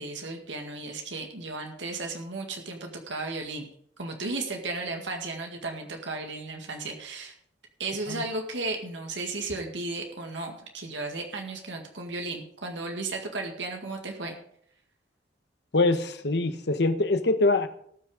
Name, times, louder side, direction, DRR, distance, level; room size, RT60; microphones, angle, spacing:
voice 1, 0.0-3.7 4.0-7.3 7.8-14.3, right 3 dB, 85° right, 3 dB, 1.9 m, -34 dB
voice 2, 15.7-17.7, left 2 dB, 65° left, 9 dB, 1.1 m, -24 dB
18.5 x 6.2 x 4.9 m, 0.64 s
head